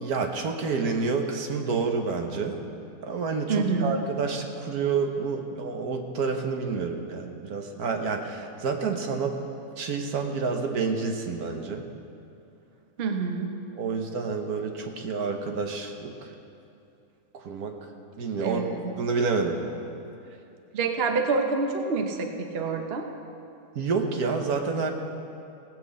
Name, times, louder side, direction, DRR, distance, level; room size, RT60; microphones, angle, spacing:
voice 1, 0.0-2.6 3.0-9.4 9.8-11.9 13.8-16.3 17.3-17.9 18.2-19.6 23.7-24.9, right 4 dB, 70° right, 4 dB, 1.5 m, -29 dB
voice 2, 3.5-4.0 13.0-13.5 18.4-18.9 20.7-23.0, right 4 dB, 45° right, 4 dB, 1.0 m, -27 dB
17.5 x 6.1 x 7.5 m, 2.6 s
omnidirectional pair, 1.7 m